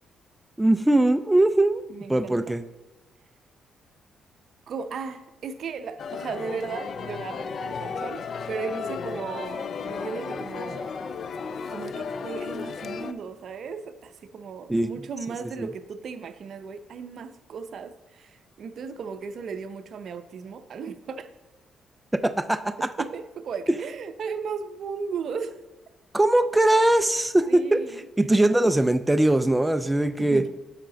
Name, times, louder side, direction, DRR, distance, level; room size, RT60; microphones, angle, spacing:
voice 1, 0.6-1.8 2.1-2.6 14.7-14.9 15.6-15.7 22.1-22.9 26.1-30.4, right 1 dB, 10° right, 10 dB, 0.3 m, -21 dB
voice 2, 1.9-2.5 4.7-10.9 11.7-21.3 23.0-25.6 27.5-28.1 30.2-30.5, right 5 dB, 60° right, 10 dB, 0.6 m, -36 dB
sound 1, 6.0-13.1, left 5 dB, 55° left, 0.4 m, -34 dB
9.0 x 5.7 x 3.9 m, 1.1 s
cardioid pair, 90°, 0 cm